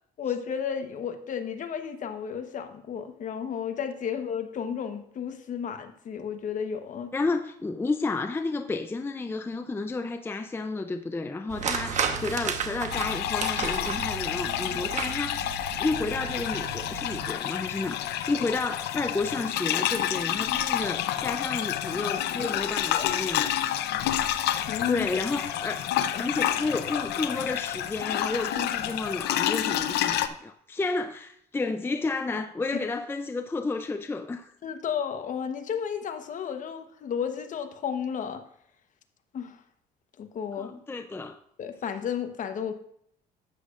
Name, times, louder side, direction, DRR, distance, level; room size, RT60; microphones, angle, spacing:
voice 1, 0.2-7.1 17.9-18.0 22.4-23.1 24.7-25.1 26.1-26.3 34.6-38.4 39.3-39.6 40.2-40.7 41.6-42.7, left 7 dB, 50° left, 1.1 m, -33 dB
voice 2, 7.1-23.6 24.9-25.8 26.2-34.5 40.6-41.4, left 3 dB, 15° left, 0.5 m, -31 dB
sound 1, 11.5-17.3, right 6 dB, 45° right, 1.1 m, -33 dB
sound 2, 12.9-30.3, left 11 dB, 80° left, 0.6 m, -29 dB
12.5 x 8.3 x 2.5 m
cardioid pair, 110°, 17 cm